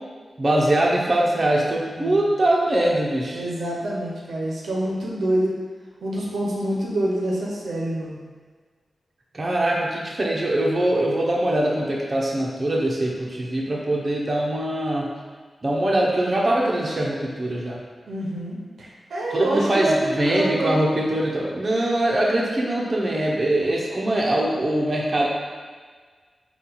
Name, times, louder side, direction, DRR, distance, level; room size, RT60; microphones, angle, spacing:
voice 1, 0.4-3.4 9.3-15.1 15.6-17.8 19.3-25.3, right 1 dB, 40° right, -3 dB, 0.8 m, -22 dB
voice 2, 2.0-2.3 3.3-5.6 6.0-8.2 18.1-20.9, right 1 dB, 85° right, -4 dB, 0.7 m, -26 dB
4.2 x 2.4 x 3.9 m, 1.5 s
cardioid pair, 50°, 0 cm